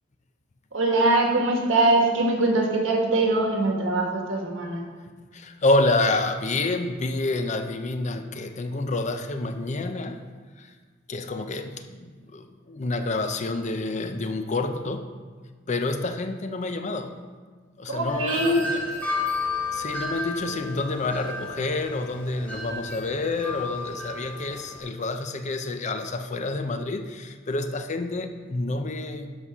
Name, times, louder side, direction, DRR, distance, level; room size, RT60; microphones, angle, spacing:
voice 1, 0.7-4.9 17.9-18.6, right 2 dB, 80° right, 1 dB, 1.6 m, -22 dB
voice 2, 5.3-10.2 10.6-10.7 11.1-15.1 15.7-17.1 17.8-18.9 19.7-29.4, left 2 dB, 40° left, 7 dB, 0.5 m, -28 dB
Wind chime, 18.1-24.8, left 3 dB, 10° left, 1.9 m, -33 dB
11.0 x 4.1 x 6.1 m, 1.5 s
head